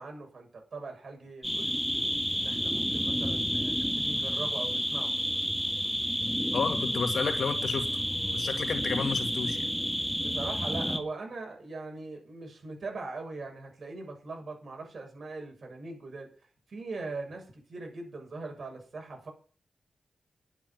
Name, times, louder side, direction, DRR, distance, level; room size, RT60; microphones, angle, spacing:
voice 1, 0.0-1.8 2.3-5.1 10.1-16.3 16.7-19.3, right 3 dB, 55° right, 7.2 m, -41 dB
sound 1, 1.4-11.0, equal, ahead, 1.9 m, -30 dB
voice 2, 6.5-7.9 8.3-9.7, left 5 dB, 80° left, 2.1 m, -31 dB
11.0 x 8.5 x 9.4 m
cardioid pair, 80°, 0 cm